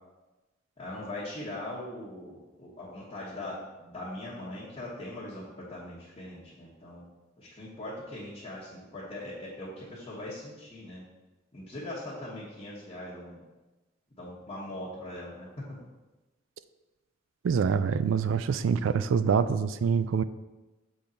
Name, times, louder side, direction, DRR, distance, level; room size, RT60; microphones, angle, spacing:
voice 1, 0.8-7.1 7.4-11.0 11.5-13.4 14.2-15.8, left 1 dB, 30° left, -9 dB, 1.3 m, -41 dB
voice 2, 17.4-20.2, right 6 dB, 70° right, 13 dB, 0.3 m, -25 dB
6.9 x 3.9 x 4.3 m, 1.1 s
head